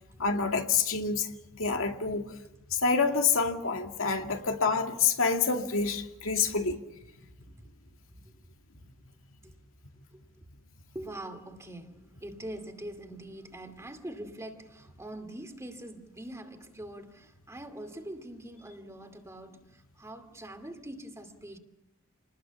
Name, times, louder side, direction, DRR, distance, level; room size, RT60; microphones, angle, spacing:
voice 1, 0.2-2.3 2.7-6.8, left 5 dB, 75° left, 2.3 m, -27 dB
voice 2, 10.1-10.4 10.9-21.6, right 1 dB, 15° right, 2.4 m, -44 dB
28.5 x 20.0 x 7.2 m
head